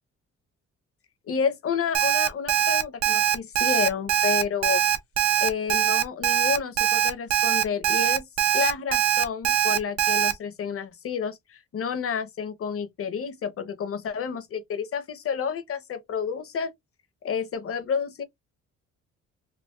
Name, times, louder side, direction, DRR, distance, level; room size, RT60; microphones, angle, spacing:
voice 1, 1.3-4.8 5.4-8.3 8.5-16.7 17.2-18.2, left 6 dB, 50° left, 0.8 m, -30 dB
Alarm, 1.9-10.3, right 10 dB, 60° right, 0.7 m, -22 dB
3.9 x 2.2 x 2.3 m
cardioid pair, 90°, 30 cm